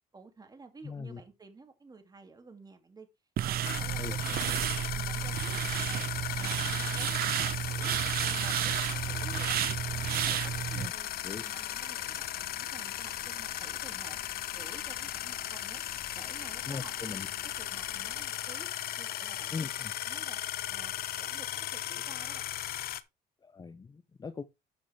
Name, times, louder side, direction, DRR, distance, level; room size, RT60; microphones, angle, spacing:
voice 1, 0.1-3.1 3.5-4.6 4.9-6.0 6.3-7.3 7.6-8.0 8.2-9.6 9.9-14.2 14.5-15.8 16.1-19.7 20.0-20.4 20.7-22.5, right 3 dB, 20° right, 2.4 m, -52 dB
voice 2, 0.8-1.2 4.0-4.1 4.5-4.6 10.7-10.9 11.2-11.4 16.7-17.3 19.5-19.9 23.4-24.4, left 5 dB, 25° left, 0.7 m, -40 dB
sound 1, 3.4-10.9, right 11 dB, 65° right, 0.7 m, -32 dB
sound 2, 3.6-23.0, left 13 dB, 65° left, 0.8 m, -37 dB
sound 3, 6.0-18.3, left 5 dB, 85° left, 5.0 m, -54 dB
12.0 x 6.4 x 3.4 m
cardioid pair, 110°, 17 cm